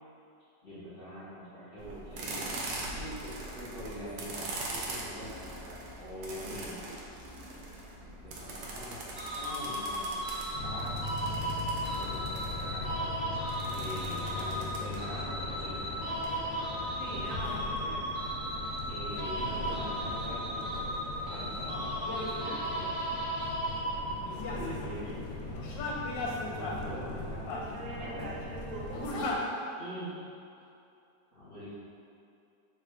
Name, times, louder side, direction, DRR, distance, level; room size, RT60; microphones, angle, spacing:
voice 1, 0.6-7.0 8.2-11.2 11.9-12.9 13.7-16.0 17.0-18.0 18.9-20.8 21.2-22.5 22.8-22.9 24.0-25.2 26.5-28.4 29.8-30.2 31.3-31.7, equal, 50° left, -12 dB, 0.7 m, -44 dB
sound 1, 1.8-16.3, right 2 dB, 80° right, 1.3 m, -42 dB
sound 2, 9.2-24.4, equal, 35° right, 0.7 m, -36 dB
sound 3, 10.5-29.4, left 2 dB, 80° left, 1.2 m, -38 dB
voice 2, 17.0-18.1 27.4-29.5, right 2 dB, 60° right, -4 dB, 1.0 m, -42 dB
3.5 x 2.4 x 4.3 m, 2.6 s
omnidirectional pair, 2.0 m